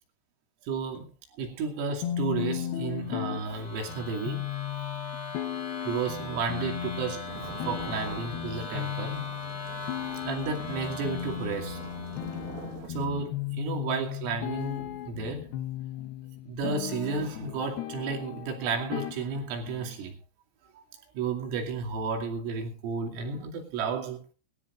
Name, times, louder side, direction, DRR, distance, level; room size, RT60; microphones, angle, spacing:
voice 1, 0.6-1.1 1.4-4.5 5.9-9.2 10.0-11.8 12.9-15.5 16.4-20.2 20.8-20.9 21.2-24.2, right 4 dB, 85° right, 5.2 m, -32 dB
sound 1, 2.0-20.0, left 12 dB, 75° left, 2.4 m, -36 dB
sound 2, 3.0-12.7, left 3 dB, 35° left, 2.4 m, -41 dB
sound 3, 7.2-12.9, right 7 dB, 65° right, 2.7 m, -45 dB
23.5 x 13.0 x 2.5 m
omnidirectional pair, 5.7 m